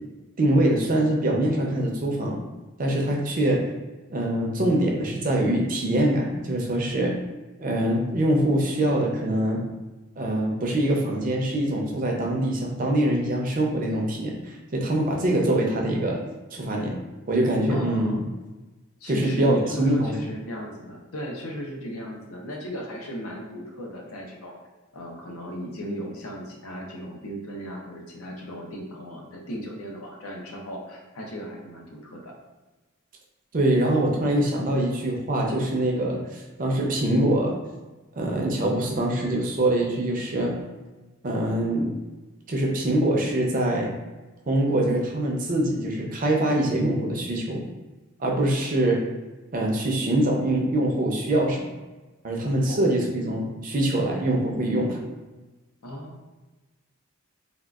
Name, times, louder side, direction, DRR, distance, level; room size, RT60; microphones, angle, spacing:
voice 1, 0.4-2.4 2.8-3.6 4.1-7.1 7.6-9.6 10.2-16.2 16.5-17.0 17.3-18.2 19.1-20.2 33.5-37.5 38.2-40.6 41.2-41.9 42.5-43.9 44.5-47.6 48.2-49.0 49.5-51.7 52.2-55.0, right 1 dB, 40° right, -1 dB, 0.5 m, -24 dB
voice 2, 17.7-18.2 19.0-24.6 24.9-32.3 52.6-53.1 55.8-56.3, equal, 85° left, 0 dB, 0.7 m, -36 dB
3.5 x 2.3 x 2.3 m, 1.2 s
head